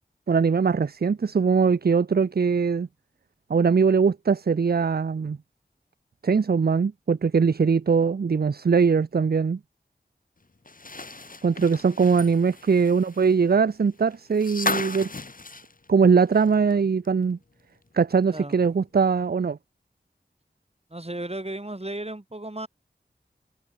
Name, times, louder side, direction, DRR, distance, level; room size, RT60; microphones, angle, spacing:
voice 1, 0.3-2.9 3.5-5.4 6.2-9.6 11.4-15.1 15.9-17.4 17.9-19.6, right 5 dB, 55° right, 0.5 m, -21 dB
sound 1, 10.7-16.7 17.0-17.1 18.5-18.6, left 3 dB, 45° left, 1.1 m, -35 dB
voice 2, 20.9-22.7, right 1 dB, 35° right, 4.9 m, -34 dB
wide cardioid pair, 45°, 19 cm